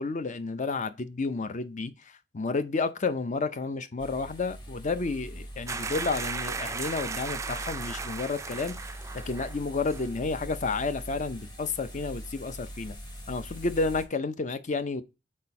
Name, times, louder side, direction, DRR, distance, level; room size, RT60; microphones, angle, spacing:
voice 1, 0.0-1.9 2.3-8.7 9.3-13.0 13.3-15.0, left 3 dB, 40° left, 0.6 m, -31 dB
sound 1, 4.0-14.0, equal, 25° left, 1.2 m, -42 dB
sound 2, 5.7-9.6 9.9-10.1, right 4 dB, 15° right, 0.4 m, -36 dB
4.4 x 4.2 x 5.3 m
head